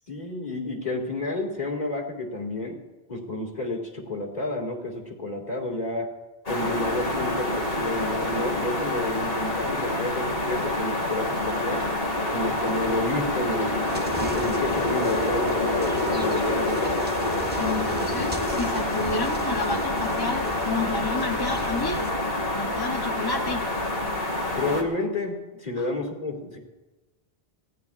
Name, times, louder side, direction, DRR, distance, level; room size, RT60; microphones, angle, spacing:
voice 1, 0.1-2.8 3.1-6.1 6.5-11.9 12.3-13.8 14.1-17.0 24.5-26.6, left 2 dB, 45° left, 1 dB, 2.2 m, -30 dB
sound 1, 6.5-24.8, left 1 dB, 65° left, 2.2 m, -27 dB
sound 2, 13.9-22.1, right 1 dB, 10° right, 0.5 m, -39 dB
voice 2, 17.6-22.1 22.5-23.7 25.8-25.9, left 3 dB, 25° left, 3 dB, 0.7 m, -30 dB
25.5 x 17.0 x 2.4 m, 1.1 s
omnidirectional pair, 1.0 m